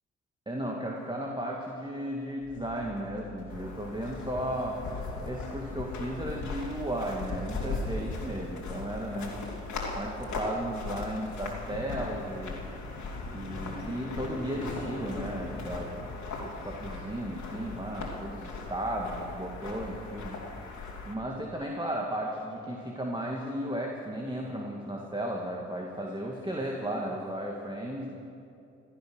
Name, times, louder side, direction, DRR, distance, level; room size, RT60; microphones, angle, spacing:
voice 1, 0.5-4.8 5.2-9.5 9.9-12.6 13.3-16.1 16.4-20.4 21.0-28.1, right 1 dB, 15° right, -1 dB, 2.3 m, -35 dB
sound 1, 2.4-20.6, left 3 dB, 85° left, 3.8 m, -48 dB
sound 2, 3.5-21.1, left 3 dB, 60° left, 3.1 m, -38 dB
16.5 x 13.0 x 6.4 m, 2.6 s
hypercardioid pair, 50°, 33 cm